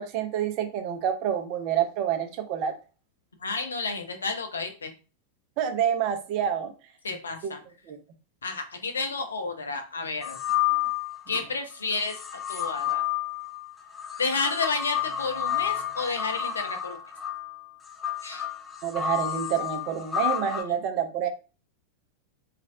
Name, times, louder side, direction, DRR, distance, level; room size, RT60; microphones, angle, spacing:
voice 1, 0.0-2.7 5.6-6.7 7.4-7.5 7.9-8.0 18.8-21.3, right 9 dB, 40° right, 6 dB, 0.5 m, -28 dB
voice 2, 3.4-4.9 7.0-7.6 8.4-10.4 11.3-12.1 12.5-13.0 14.2-17.0 18.2-18.5, left 4 dB, 70° left, 6 dB, 0.5 m, -31 dB
sound 1, 10.2-11.5 12.0-20.6, left 10 dB, 15° left, 0.4 m, -30 dB
3.1 x 2.4 x 2.5 m, 0.33 s
figure-of-eight pair, 90°, 0 cm